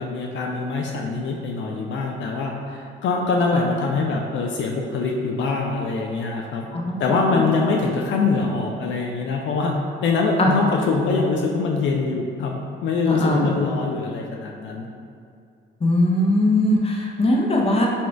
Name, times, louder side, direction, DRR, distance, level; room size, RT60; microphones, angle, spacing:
voice 1, 0.0-6.7 7.0-9.7 10.0-14.9, left 4 dB, 70° left, 0 dB, 0.5 m, -24 dB
voice 2, 13.1-13.5 15.8-17.9, left 1 dB, 30° left, -1 dB, 0.7 m, -20 dB
4.2 x 2.4 x 4.4 m, 2.4 s
cardioid pair, 90°, 20 cm